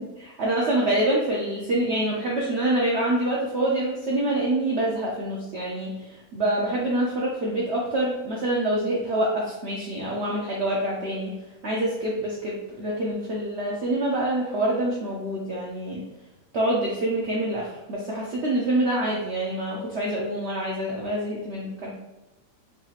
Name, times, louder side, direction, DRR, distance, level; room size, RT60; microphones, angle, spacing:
voice 1, 0.0-11.3 11.6-16.0 16.5-21.9, right 1 dB, 80° right, -3 dB, 0.6 m, -26 dB
4.7 x 2.8 x 2.4 m, 1.0 s
omnidirectional pair, 1.9 m